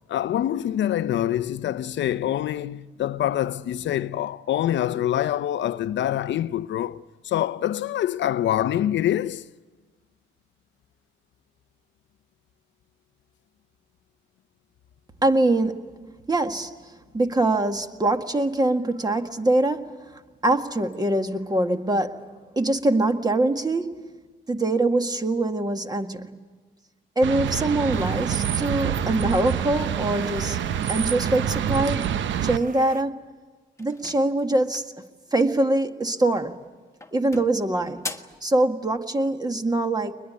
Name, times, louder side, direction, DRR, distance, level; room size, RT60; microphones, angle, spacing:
voice 1, 0.1-9.5, left 11 dB, 65° left, 0.7 m, -25 dB
voice 2, 15.2-15.9 16.3-16.7 17.1-24.0 24.5-26.4 27.2-32.1 32.4-33.2 33.8-34.9 35.3-36.6 37.1-38.1 38.4-40.1, right 2 dB, 20° right, 1.8 m, -23 dB
sound 1, 27.2-32.6, right 9 dB, 70° right, 0.9 m, -27 dB
sound 2, 27.9-33.0, right 7 dB, 45° right, 1.1 m, -38 dB
sound 3, 33.8-35.0 36.3-36.7 37.0-38.4, left 2 dB, 15° left, 1.5 m, -39 dB
22.5 x 21.0 x 9.6 m
cardioid pair, 90°, 20 cm